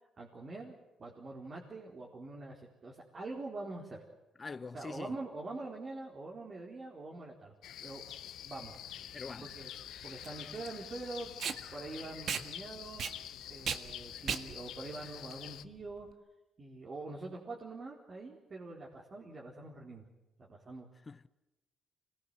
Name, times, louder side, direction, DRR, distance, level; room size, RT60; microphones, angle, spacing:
voice 1, 0.2-4.0 4.7-7.5 7.8-8.0 8.4-8.7 9.4-9.7 10.0-13.0 13.5-16.1 16.6-20.1 20.4-20.9, right 2 dB, 40° right, 4.3 m, -44 dB
voice 2, 4.4-5.2 9.1-9.5 21.1-21.3, left 4 dB, 30° left, 0.8 m, -44 dB
sound 1, 7.6-15.6, left 11 dB, 80° left, 0.8 m, -47 dB
Packing tape duct tape, 8.6-16.1, right 7 dB, 60° right, 1.7 m, -40 dB
25.5 x 19.5 x 8.0 m
cardioid pair, 90°, 0 cm